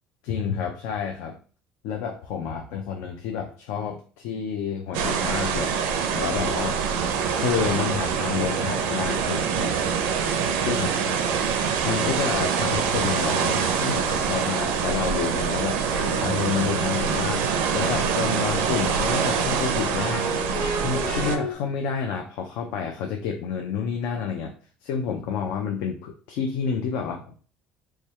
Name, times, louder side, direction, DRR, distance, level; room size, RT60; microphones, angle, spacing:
voice 1, 0.2-1.4 1.8-6.8 7.3-9.8 10.6-11.2 11.8-15.8 16.1-20.4 20.7-24.5 24.8-27.4, left 6 dB, 85° left, 2 dB, 0.5 m, -29 dB
sound 1, 4.9-21.4, right 6 dB, 85° right, 0.5 m, -25 dB
sound 2, 15.9-21.5, equal, 55° left, 1.5 m, -34 dB
3.2 x 2.3 x 4.2 m, 0.40 s
cardioid pair, 155°, 3 cm